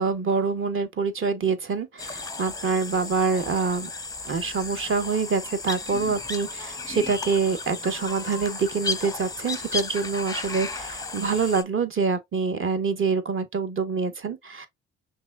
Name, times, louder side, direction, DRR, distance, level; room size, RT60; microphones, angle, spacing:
voice 1, 0.0-3.9 4.2-14.7, right 5 dB, 40° right, 1.1 m, -26 dB
sound 1, 2.0-11.6, left 4 dB, 10° left, 0.6 m, -34 dB
5.9 x 2.7 x 2.4 m
hypercardioid pair, 55°, 33 cm